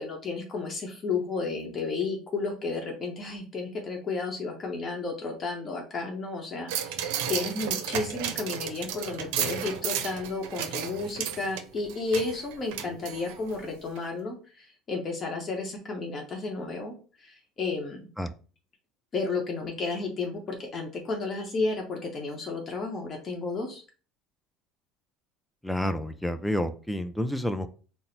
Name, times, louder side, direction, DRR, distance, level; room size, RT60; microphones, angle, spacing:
voice 1, 0.0-16.9 17.2-18.1 19.1-23.8, left 3 dB, 35° left, 1 dB, 0.8 m, -32 dB
sound 1, 6.7-13.6 14.0-14.1, right 9 dB, 85° right, 0.5 m, -33 dB
voice 2, 25.6-27.7, equal, ahead, 9 dB, 0.4 m, -29 dB
4.1 x 2.0 x 4.0 m, 0.37 s
cardioid pair, 120°, 0 cm